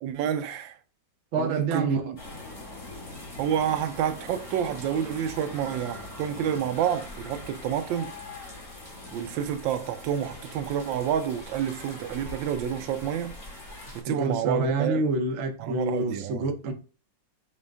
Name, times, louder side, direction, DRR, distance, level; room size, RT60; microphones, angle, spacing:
voice 1, 0.0-0.8 1.4-2.2 3.4-8.2 9.1-13.4 13.9-15.0 15.6-16.5, right 9 dB, 90° right, 1.3 m, -29 dB
voice 2, 1.3-2.0 14.1-16.7, right 3 dB, 55° right, 0.8 m, -27 dB
sound 1, 2.2-14.0, left 2 dB, 45° left, 1.6 m, -42 dB
6.0 x 2.2 x 3.5 m
omnidirectional pair, 2.0 m